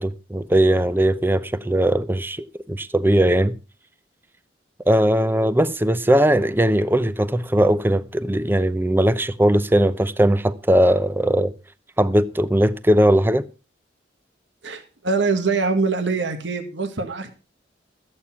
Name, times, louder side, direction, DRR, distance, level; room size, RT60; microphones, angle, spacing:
voice 1, 0.0-3.5 4.9-11.5 12.0-13.5, right 1 dB, 10° right, 0.6 m, -19 dB
voice 2, 14.6-17.3, right 4 dB, 90° right, 1.7 m, -23 dB
13.5 x 8.6 x 5.9 m
head